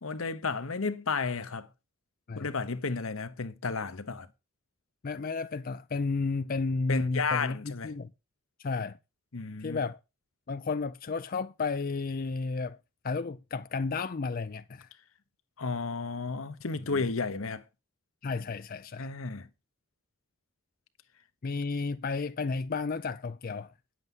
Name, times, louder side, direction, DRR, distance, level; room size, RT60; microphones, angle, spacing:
voice 1, 0.0-1.7 2.3-4.3 6.9-7.9 9.3-9.8 15.6-17.6 19.0-19.5, left 4 dB, 80° left, 1.0 m, -32 dB
voice 2, 5.0-8.1 8.6-9.0 9.6-10.0 10.5-12.8 13.0-14.9 16.9-17.1 18.2-19.1 21.4-23.7, left 4 dB, 45° left, 0.4 m, -32 dB
9.5 x 7.7 x 5.4 m
head